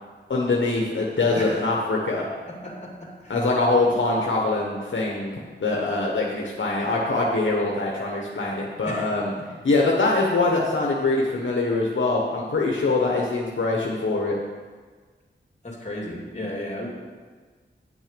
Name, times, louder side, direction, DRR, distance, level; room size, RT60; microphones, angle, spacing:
voice 1, 0.3-2.3 3.3-9.3 9.6-14.4, left 3 dB, 75° left, -2 dB, 1.2 m, -23 dB
voice 2, 2.5-3.4 8.8-9.1 15.6-16.9, left 1 dB, 35° left, -2 dB, 2.6 m, -34 dB
9.6 x 6.3 x 5.2 m, 1.5 s
wide cardioid pair, 60°, 20 cm